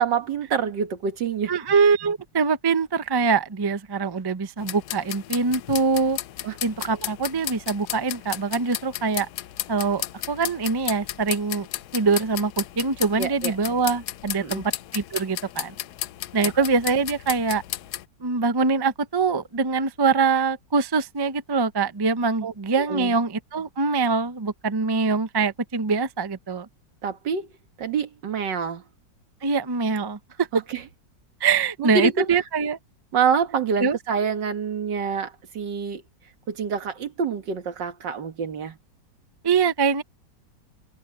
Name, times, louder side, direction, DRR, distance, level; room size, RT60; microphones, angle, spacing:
voice 1, 0.0-1.5 6.4-6.6 13.2-13.6 14.4-14.6 22.4-23.2 27.0-27.5 27.8-28.8 30.5-30.8 31.8-32.3 33.1-36.0 36.5-38.8, right 6 dB, 80° right, 2.3 m, -26 dB
voice 2, 1.5-6.2 6.6-9.3 9.7-11.7 11.9-15.7 16.3-17.6 18.2-26.7 29.4-30.5 31.4-32.8 33.8-34.0 39.4-40.0, right 4 dB, 35° right, 0.4 m, -23 dB
sound 1, 4.6-18.1, left 14 dB, 70° left, 1.1 m, -34 dB
omnidirectional pair, 1.9 m